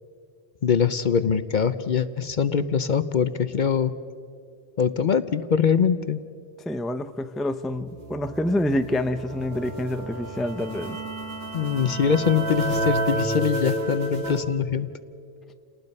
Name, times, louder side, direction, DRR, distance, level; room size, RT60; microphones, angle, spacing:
voice 1, 0.6-3.9 4.8-6.2 11.5-14.9, left 7 dB, 55° left, 13 dB, 0.7 m, -23 dB
voice 2, 6.7-11.0, left 1 dB, ahead, 9 dB, 0.5 m, -27 dB
sound 1, 7.9-14.4, right 1 dB, 70° right, 2.3 m, -30 dB
29.0 x 19.0 x 5.4 m, 2.3 s
omnidirectional pair, 1.1 m